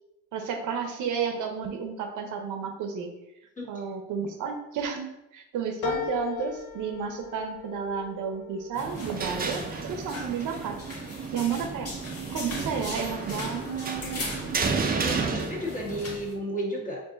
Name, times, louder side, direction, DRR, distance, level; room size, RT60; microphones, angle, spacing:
voice 1, 0.3-3.1 3.7-5.1 5.3-10.8 11.3-11.9 12.3-14.2 14.6-14.7, right 6 dB, 85° right, 4 dB, 0.7 m, -32 dB
voice 2, 3.6-3.9 15.0-17.0, equal, 25° left, -4 dB, 1.6 m, -33 dB
sound 1, 5.8-10.6 11.1-11.8 12.1-12.2, left 9 dB, 80° left, 0.6 m, -38 dB
sound 2, 8.7-16.3, left 2 dB, 50° left, 1.5 m, -39 dB
sound 3, 8.8-16.2, right 4 dB, 30° right, 0.5 m, -32 dB
4.7 x 2.7 x 3.8 m, 0.90 s
cardioid pair, 90°, 30 cm